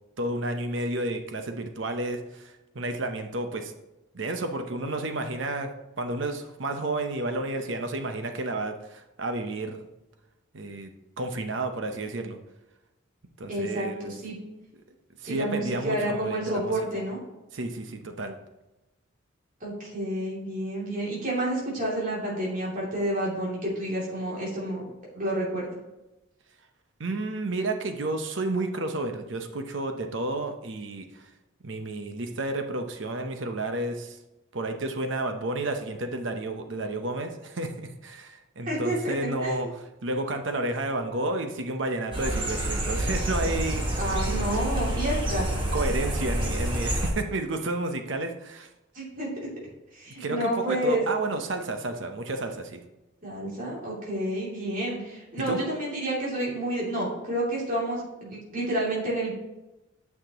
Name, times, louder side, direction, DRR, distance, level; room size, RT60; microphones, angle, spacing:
voice 1, 0.2-3.7 4.1-5.7 6.0-9.9 10.5-12.4 13.4-14.1 15.2-16.7 17.5-18.4 27.0-31.2 31.6-34.2 34.5-44.0 45.7-48.7 50.2-52.8 55.5-55.6, right 2 dB, 65° right, 6 dB, 0.8 m, -31 dB
voice 2, 13.5-14.4 15.3-17.2 19.6-24.9 25.1-25.7 38.6-39.1 39.4-39.7 44.0-45.5 48.9-49.3 49.9-51.0 53.2-59.3, right 1 dB, 40° right, -6 dB, 2.7 m, -29 dB
sound 1, 42.1-47.1, right 1 dB, 25° right, 1.5 m, -28 dB
9.2 x 5.9 x 3.0 m, 0.97 s
head